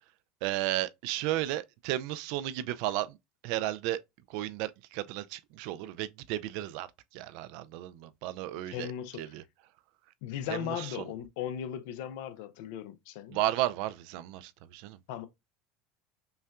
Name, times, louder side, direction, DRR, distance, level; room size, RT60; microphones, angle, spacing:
voice 1, 0.4-3.2 3.4-4.0 4.3-6.9 7.1-8.9 9.2-9.4 10.5-11.1 13.3-15.0, right 15 dB, 70° right, 0.3 m, -33 dB
voice 2, 8.7-9.3 10.2-13.4 15.1-15.3, left 10 dB, 75° left, 0.5 m, -37 dB
5.4 x 2.2 x 2.4 m
supercardioid pair, 135°, 0 cm